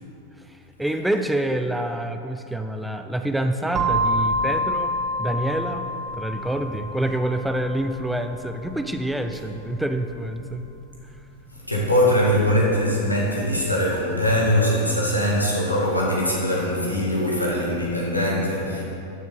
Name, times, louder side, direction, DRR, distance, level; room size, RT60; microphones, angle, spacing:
voice 1, 0.8-5.9 6.2-10.6, right 1 dB, 5° right, 7 dB, 0.4 m, -27 dB
sound 1, 3.7-11.6, equal, 30° right, 1.1 m, -29 dB
voice 2, 11.5-18.8, equal, 85° left, -4 dB, 2.1 m, -22 dB
13.5 x 6.9 x 4.0 m, 2.8 s
figure-of-eight pair, 90°, 0 cm